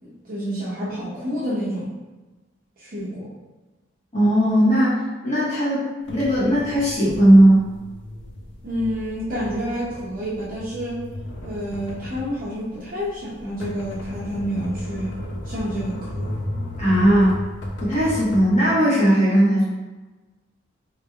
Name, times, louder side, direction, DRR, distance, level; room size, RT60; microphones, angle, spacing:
voice 1, 0.0-1.9 2.8-3.3 8.6-11.0 11.4-15.2 15.4-16.3, equal, 45° right, -7 dB, 0.6 m, -29 dB
voice 2, 4.1-7.6 16.8-17.4 17.8-19.6, right 1 dB, 35° left, -9 dB, 1.2 m, -17 dB
sound 1, 6.1-18.5, left 1 dB, 65° left, 0.6 m, -34 dB
3.9 x 3.2 x 2.3 m, 1.2 s
head